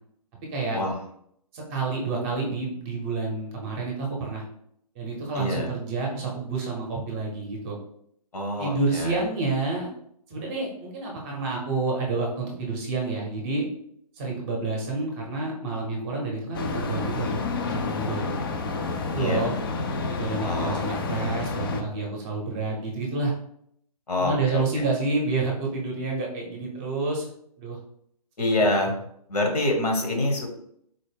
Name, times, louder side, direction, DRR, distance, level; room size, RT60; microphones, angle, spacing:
voice 1, 1.5-4.4 4.9-7.8 8.6-9.9 10.3-13.7 14.2-18.3 19.1-19.5 20.0-23.3 24.2-27.2 27.6-27.8, right 3 dB, 20° right, -1 dB, 0.7 m, -29 dB
voice 2, 5.3-5.7 8.3-9.2 19.2-19.4 20.4-20.8 24.1-24.8 28.4-28.9 29.3-30.5, left 1 dB, 80° left, 2 dB, 1.2 m, -26 dB
sound 1, 16.5-21.8, left 4 dB, 35° left, 0.4 m, -29 dB
4.0 x 2.0 x 3.4 m, 0.70 s
hypercardioid pair, 145°, 20 cm